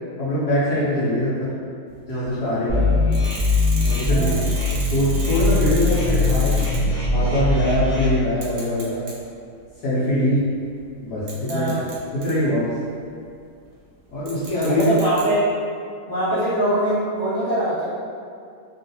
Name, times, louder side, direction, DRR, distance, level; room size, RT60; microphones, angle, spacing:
voice 1, 0.2-1.5 2.1-3.0 3.9-4.4 4.9-6.6 7.1-9.0 9.8-10.5 11.0-11.8 12.1-12.7 14.1-14.9, equal, 65° left, -12 dB, 1.1 m, -22 dB
sound 1, 1.9-2.3 3.1-7.0 7.3-7.4 8.3-9.2 9.7-9.9 10.8-10.9 11.3-12.3 14.3-15.2, right 2 dB, 75° right, 0.8 m, -36 dB
sound 2, 2.7-8.0, left 3 dB, 35° left, 0.5 m, -21 dB
voice 2, 4.1-4.4 11.5-11.8 14.7-15.4 16.1-17.8, right 1 dB, 30° right, -16 dB, 1.4 m, -22 dB
3.0 x 2.5 x 2.6 m, 2.4 s
omnidirectional pair, 2.1 m